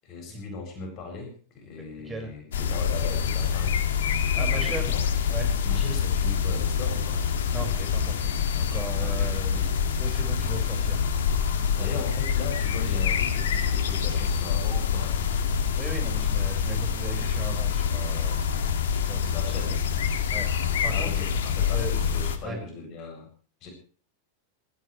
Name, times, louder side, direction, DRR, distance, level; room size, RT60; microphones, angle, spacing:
voice 1, 0.0-3.8 4.3-5.0 5.6-7.2 9.0-9.3 11.7-15.4 19.3-19.8 20.9-23.3 23.6-23.7, left 4 dB, 35° left, 2 dB, 7.7 m, -38 dB
sound 1, 2.5-22.4, left 7 dB, 60° left, 2.2 m, -26 dB
voice 2, 4.3-4.9 5.3-5.5 7.5-9.7 10.0-11.1 11.6-12.0 15.7-18.5 18.9-19.8 20.3-21.2 21.7-21.9 22.4-22.6, right 3 dB, 15° right, 2 dB, 5.8 m, -38 dB
27.0 x 15.5 x 3.3 m, 0.41 s
figure-of-eight pair, 90°, 0 cm